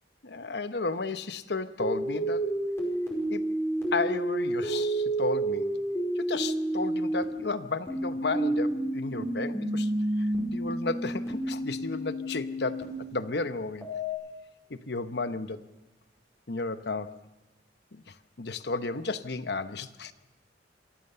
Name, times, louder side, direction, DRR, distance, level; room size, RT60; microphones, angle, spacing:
voice 1, 0.2-2.4 3.3-3.4 3.9-5.6 6.2-9.9 10.5-12.8 13.1-13.9 14.7-15.6 16.5-17.1 17.9-18.0 18.4-20.1, left 3 dB, 60° left, 11 dB, 1.0 m, -33 dB
sound 1, 1.8-7.2 7.9-12.8 13.8-14.1, right 1 dB, 15° left, 5.1 m, -30 dB
26.0 x 15.5 x 6.8 m, 1.0 s
head